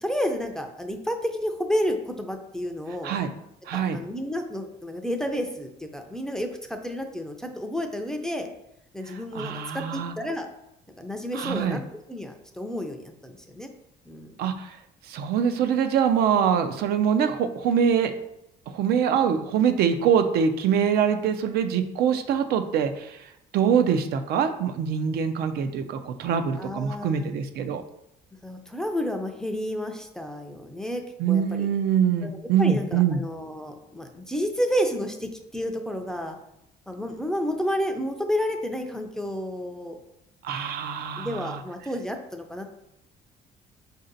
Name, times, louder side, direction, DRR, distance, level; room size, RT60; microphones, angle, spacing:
voice 1, 0.0-3.2 3.7-8.5 8.9-10.5 11.0-11.8 12.1-13.7 14.1-14.4 26.6-27.3 28.4-31.0 31.3-31.7 32.2-36.4 36.9-40.0 41.2-42.7, equal, 5° left, 4 dB, 0.4 m, -30 dB
voice 2, 3.7-4.0 9.1-10.1 11.3-11.8 14.4-14.8 15.1-18.1 18.7-23.2 23.5-27.8 31.2-33.2 40.4-41.6, right 7 dB, 70° right, 8 dB, 0.4 m, -24 dB
4.1 x 2.7 x 3.9 m, 0.82 s
cardioid pair, 110°, 17 cm